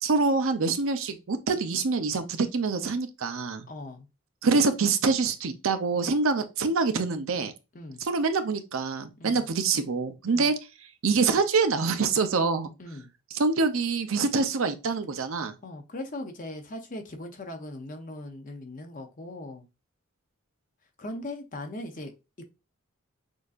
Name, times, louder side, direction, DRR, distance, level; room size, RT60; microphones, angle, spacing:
voice 1, 0.0-3.7 4.4-7.5 8.0-10.5 11.0-12.7 13.3-15.5, right 4 dB, 70° right, 0.6 m, -25 dB
voice 2, 3.7-4.1 7.7-8.0 9.2-9.4 10.3-10.5 12.8-13.1 15.6-19.7 21.0-22.1 22.4-22.5, left 1 dB, 40° left, 0.6 m, -39 dB
6.3 x 2.6 x 2.4 m
head